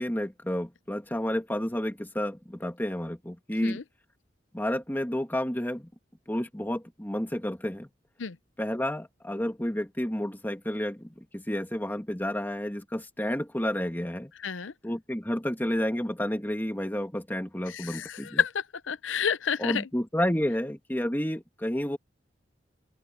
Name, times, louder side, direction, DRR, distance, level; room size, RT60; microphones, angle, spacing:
voice 1, 0.0-3.8 4.5-5.9 6.3-7.9 8.6-14.3 14.8-18.4 19.6-22.0, equal, 10° left, 2.1 m, -30 dB
voice 2, 14.4-14.7 17.7-19.8, left 7 dB, 85° left, 0.7 m, -30 dB
open air
head